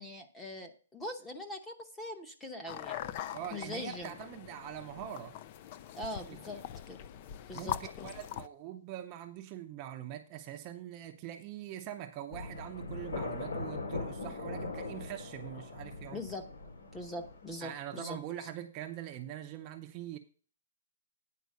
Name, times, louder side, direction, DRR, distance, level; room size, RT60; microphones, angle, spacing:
voice 1, 0.0-3.2 3.5-4.2 5.9-7.0 7.5-8.1 16.1-16.4 16.9-18.5, left 1 dB, 5° left, 0.9 m, -42 dB
sound 1, 2.7-8.5, left 11 dB, 30° left, 0.4 m, -42 dB
voice 2, 3.3-5.3 6.0-6.6 7.5-7.7 8.0-16.2 17.6-20.2, right 11 dB, 25° right, 0.6 m, -43 dB
sound 2, 12.3-17.7, left 3 dB, 85° left, 4.6 m, -41 dB
9.4 x 4.5 x 6.5 m
hypercardioid pair, 170°, 0 cm